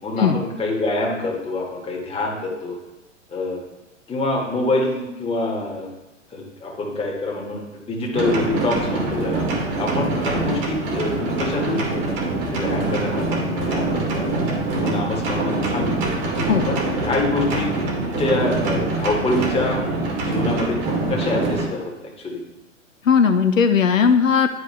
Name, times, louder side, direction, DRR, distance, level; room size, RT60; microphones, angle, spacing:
voice 1, 0.0-2.8 3.3-3.6 4.1-5.9 6.3-9.5 9.8-12.1 12.4-14.4 14.8-16.1 16.6-17.7 18.0-19.8 20.1-20.8 21.1-22.4, left 2 dB, 15° left, -1 dB, 1.8 m, -26 dB
sound 1, 8.1-21.6, right 2 dB, 40° right, 2.1 m, -24 dB
voice 2, 23.0-24.5, left 6 dB, 90° left, 8 dB, 0.6 m, -17 dB
11.0 x 4.6 x 3.2 m, 1.0 s
figure-of-eight pair, 100°, 38 cm